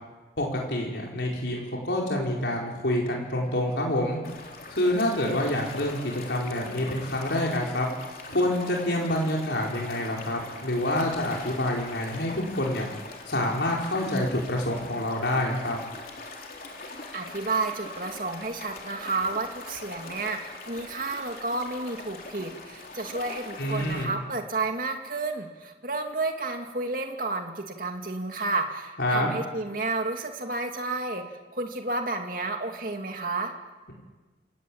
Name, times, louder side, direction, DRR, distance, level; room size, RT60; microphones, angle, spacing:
voice 1, 0.4-4.2 4.7-7.9 8.3-12.8 13.3-15.8 23.6-24.2 29.0-29.3, left 1 dB, 80° left, -2 dB, 4.8 m, -27 dB
sound 1, 4.2-24.0, left 3 dB, 55° left, 3.8 m, -42 dB
voice 2, 16.9-31.2 31.5-33.5, right 3 dB, 50° right, 4 dB, 2.3 m, -31 dB
28.5 x 16.5 x 8.8 m, 1.2 s
head